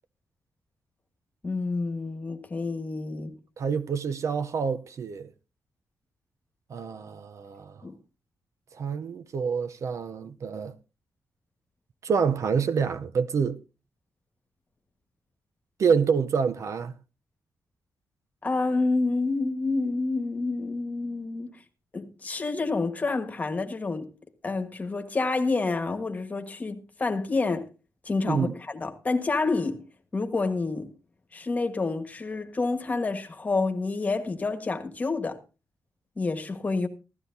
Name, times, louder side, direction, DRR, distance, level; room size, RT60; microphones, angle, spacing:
voice 1, 1.4-3.3 7.8-7.9 18.4-21.5 21.9-24.1 24.4-27.7 28.0-29.8 30.1-30.9 31.3-35.4 36.2-36.9, left 3 dB, 25° left, 1.5 m, -28 dB
voice 2, 3.6-5.3 6.7-7.8 8.8-10.8 12.0-13.6 15.8-16.9 28.3-28.5, right 6 dB, 55° right, 0.7 m, -27 dB
16.5 x 13.5 x 2.7 m
wide cardioid pair, 155°, 6 cm